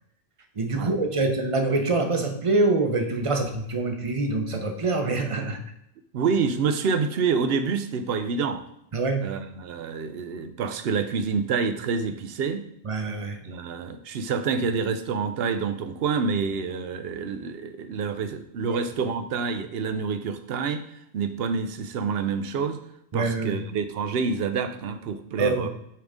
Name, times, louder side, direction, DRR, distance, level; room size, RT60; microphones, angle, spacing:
voice 1, 0.6-5.6 8.9-9.3 12.8-13.4 18.7-18.8 23.1-23.6 25.4-25.7, right 3 dB, 35° right, 4 dB, 0.7 m, -25 dB
voice 2, 6.1-8.6 9.2-12.7 13.4-20.8 21.1-22.8 23.1-25.7, right 5 dB, 70° right, 9 dB, 0.8 m, -27 dB
8.6 x 3.8 x 3.6 m, 0.76 s
omnidirectional pair, 1.1 m